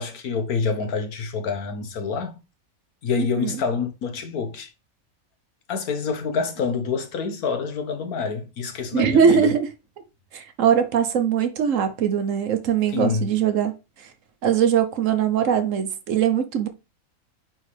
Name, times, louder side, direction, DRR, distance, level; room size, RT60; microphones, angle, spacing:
voice 1, 0.0-2.4 3.0-4.7 5.7-9.5 12.9-13.3, left 5 dB, 85° left, 1.6 m, -27 dB
voice 2, 3.2-3.5 8.9-9.7 10.3-13.7 14.4-16.7, right 8 dB, 65° right, 1.2 m, -21 dB
9.2 x 3.8 x 3.3 m
omnidirectional pair, 1.5 m